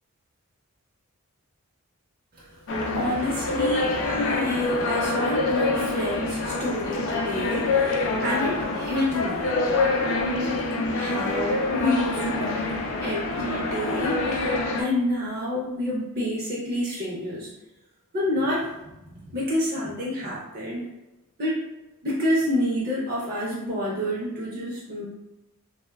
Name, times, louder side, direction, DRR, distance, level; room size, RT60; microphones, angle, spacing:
sound 1, 2.7-14.8, left 3 dB, 60° left, 0.4 m, -26 dB
voice 1, 2.9-17.5 18.1-18.7 19.1-20.8 21.4-21.6 22.0-25.0, left 1 dB, 45° right, -5 dB, 0.5 m, -29 dB
3.0 x 2.0 x 2.2 m, 0.95 s
head